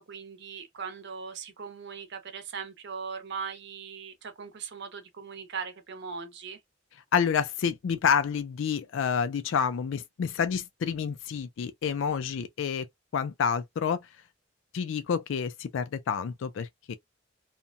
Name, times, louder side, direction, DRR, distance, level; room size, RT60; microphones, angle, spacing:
voice 1, 0.0-6.6, right 6 dB, 60° right, 0.7 m, -39 dB
voice 2, 7.1-12.9 13.1-14.0 14.7-16.9, left 7 dB, 70° left, 0.4 m, -28 dB
2.8 x 2.2 x 2.4 m
head